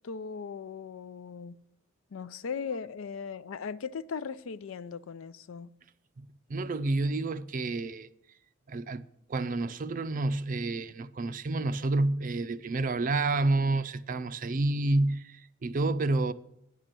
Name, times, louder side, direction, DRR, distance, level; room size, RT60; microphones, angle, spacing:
voice 1, 0.0-1.6 2.1-5.7, left 6 dB, 75° left, 0.5 m, -38 dB
voice 2, 6.2-8.1 8.7-9.0 9.3-16.3, right 2 dB, 40° right, 0.4 m, -29 dB
9.6 x 6.7 x 7.5 m
head